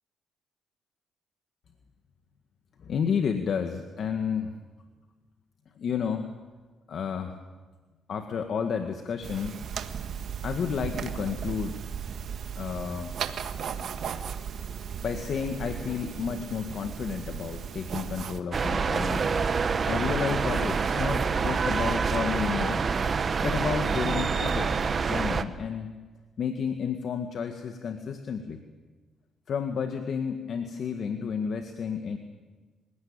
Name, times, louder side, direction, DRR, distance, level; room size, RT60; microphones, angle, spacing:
voice 1, 2.8-4.5 5.8-6.3 6.9-7.4 8.1-9.6 10.4-11.8 12.6-13.2 15.0-19.5 19.8-22.9 23.4-25.9 26.4-28.6 29.5-32.2, left 6 dB, 60° left, 6 dB, 1.9 m, -31 dB
sound 1, 9.2-18.4, right 7 dB, 65° right, 1.7 m, -36 dB
sound 2, 18.5-25.4, right 5 dB, 40° right, 1.4 m, -26 dB
28.0 x 17.0 x 8.9 m, 1.3 s
cardioid pair, 90°, 0 cm